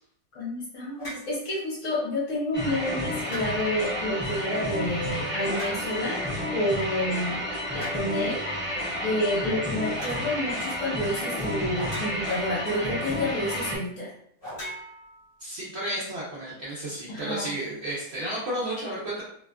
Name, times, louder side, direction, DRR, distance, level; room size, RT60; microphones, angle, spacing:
voice 1, 0.3-6.2 6.5-7.4 7.7-8.4 9.0-14.1 17.1-17.5, left 1 dB, 55° left, -6 dB, 1.1 m, -29 dB
sound 1, 1.0-1.3 3.2-3.8 5.5-6.1 7.8-8.1 10.0-10.3 11.7-12.5 14.4-15.5, equal, 40° left, 1.4 m, -39 dB
sound 2, 2.5-13.8, left 1 dB, 10° right, 0.6 m, -31 dB
voice 2, 15.4-19.2, right 1 dB, 60° right, -7 dB, 0.7 m, -32 dB
2.7 x 2.3 x 2.2 m, 0.66 s
omnidirectional pair, 1.7 m